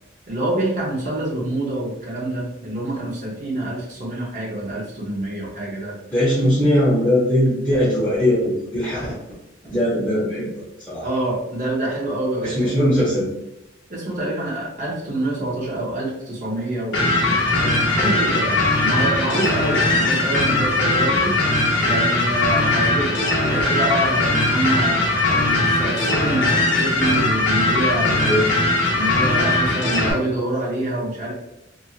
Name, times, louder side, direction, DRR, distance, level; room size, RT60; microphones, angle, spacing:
voice 1, 0.3-6.0 11.0-12.7 13.9-21.4 21.8-28.4 28.9-31.3, right 1 dB, 40° right, -4 dB, 0.7 m, -26 dB
voice 2, 6.1-9.1 9.7-11.1 12.4-13.3 28.1-28.5, equal, 10° left, -10 dB, 0.7 m, -20 dB
sound 1, 16.9-30.1, left 2 dB, 60° left, 0.7 m, -20 dB
2.8 x 2.6 x 2.4 m, 0.88 s
head